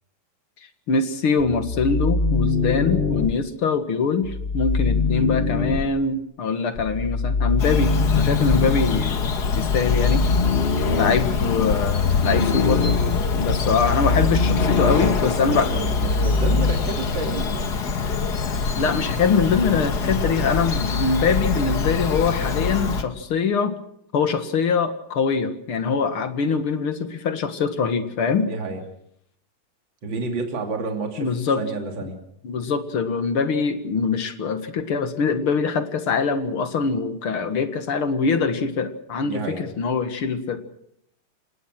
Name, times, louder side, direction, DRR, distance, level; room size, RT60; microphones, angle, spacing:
voice 1, 0.9-9.3 9.6-10.2 11.0-12.9 13.3-15.7 18.4-23.7 24.1-28.5 31.2-31.6 32.4-40.6, left 5 dB, 80° left, 9 dB, 2.6 m, -23 dB
sound 1, 1.4-3.3 4.2-5.9 6.8-8.8 9.5-16.7, left 4 dB, 35° left, 1.2 m, -23 dB
Bird vocalization bird call bird song, 7.6-23.0, left 5 dB, 50° left, 2.0 m, -25 dB
voice 2, 15.2-17.7 28.4-28.8 30.0-32.2 39.2-39.6, right 3 dB, 60° right, 3 dB, 3.5 m, -30 dB
28.5 x 18.0 x 6.2 m, 0.72 s
omnidirectional pair, 2.3 m